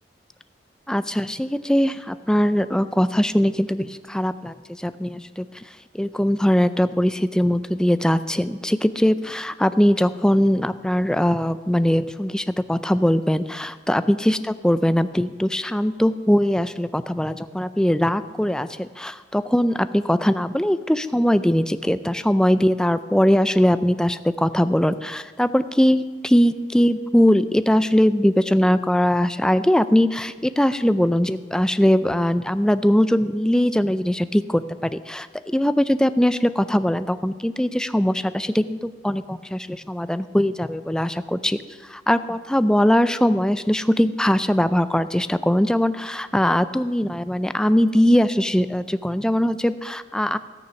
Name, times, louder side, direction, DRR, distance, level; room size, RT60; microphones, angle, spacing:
voice 1, 0.9-5.5 5.9-14.4 14.6-41.6 41.9-50.4, equal, 5° left, 12 dB, 0.4 m, -21 dB
16.5 x 6.7 x 5.8 m, 1.4 s
head